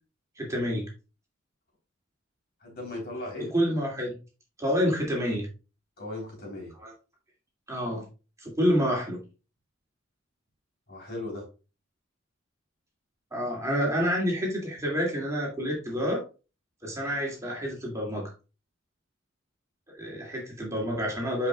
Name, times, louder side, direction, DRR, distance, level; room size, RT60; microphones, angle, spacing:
voice 1, 0.4-0.8 3.5-4.1 4.6-5.5 6.8-6.9 7.7-8.0 8.4-9.2 13.3-16.2 16.8-18.3 20.0-21.5, equal, 15° right, -3 dB, 2.5 m, -28 dB
voice 2, 2.6-3.5 6.0-6.7 10.9-11.4, left 2 dB, 50° left, -1 dB, 3.7 m, -37 dB
9.5 x 5.4 x 2.4 m, 0.31 s
head